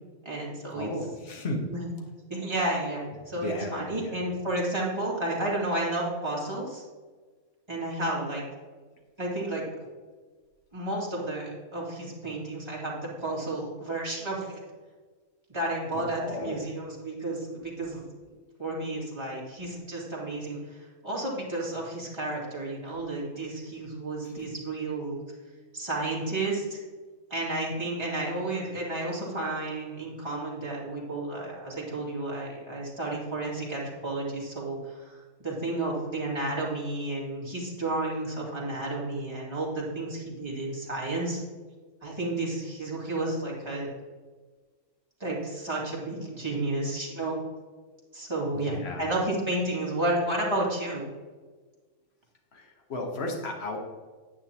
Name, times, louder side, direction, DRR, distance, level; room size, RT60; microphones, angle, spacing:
voice 1, 0.2-0.9 1.7-1.8 2.3-6.8 7.7-8.4 9.2-9.6 10.7-14.6 15.5-18.0 18.6-25.2 25.7-26.8 27.3-41.4 42.0-44.0 45.2-47.4 48.1-51.0, right 2 dB, 20° right, -5 dB, 2.5 m, -32 dB
voice 2, 0.7-1.7 3.3-4.2 15.9-16.7 24.2-24.4 48.5-49.1 52.5-53.8, left 2 dB, 50° left, 2 dB, 1.6 m, -35 dB
9.8 x 8.6 x 3.0 m, 1.4 s
omnidirectional pair, 1.4 m